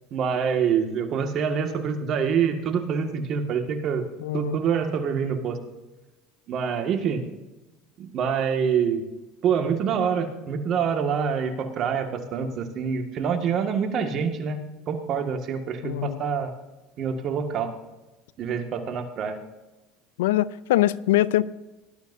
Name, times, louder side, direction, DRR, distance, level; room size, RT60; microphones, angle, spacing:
voice 1, 0.1-4.0 4.3-5.6 6.5-7.2 8.0-9.0 9.4-14.6 14.9-16.5 17.0-17.7 18.4-19.4, right 7 dB, 50° right, 1.9 m, -26 dB
voice 2, 4.2-4.6 15.8-16.2 20.2-21.5, left 15 dB, 85° left, 0.4 m, -23 dB
18.5 x 12.0 x 2.7 m
supercardioid pair, 95°, 0 cm